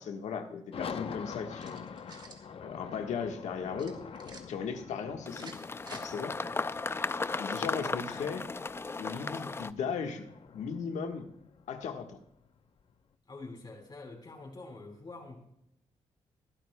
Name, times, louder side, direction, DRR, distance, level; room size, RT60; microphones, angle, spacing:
voice 1, 0.0-1.8 2.6-4.0 4.5-5.5 5.9-6.4 7.4-8.4 9.0-10.3 10.5-11.3 11.7-12.2, left 6 dB, 85° left, 5 dB, 1.4 m, -37 dB
sound 1, 0.7-12.9, left 6 dB, 55° left, 0.8 m, -46 dB
sound 2, 1.5-2.4 3.8-4.4 5.3-6.0, right 3 dB, 40° right, 1.9 m, -50 dB
sound 3, 5.3-9.7, left 3 dB, 20° left, 0.4 m, -35 dB
voice 2, 13.3-15.4, left 3 dB, 40° left, 1 dB, 4.2 m, -46 dB
21.0 x 11.5 x 2.2 m, 0.76 s
cardioid pair, 90°, 12 cm